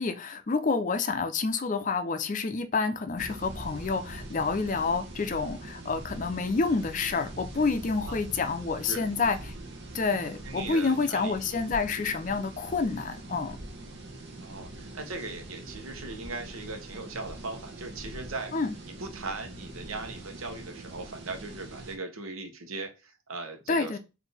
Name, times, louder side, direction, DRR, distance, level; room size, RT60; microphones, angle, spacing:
voice 1, 0.0-9.5 9.9-13.6 18.5-18.8 23.7-24.0, left 4 dB, 40° left, 0.4 m, -28 dB
sound 1, 3.2-21.9, right 1 dB, 55° right, 0.9 m, -43 dB
voice 2, 10.4-11.4 14.4-18.5 19.0-24.0, right 3 dB, 90° right, 0.9 m, -39 dB
4.2 x 2.6 x 3.3 m
head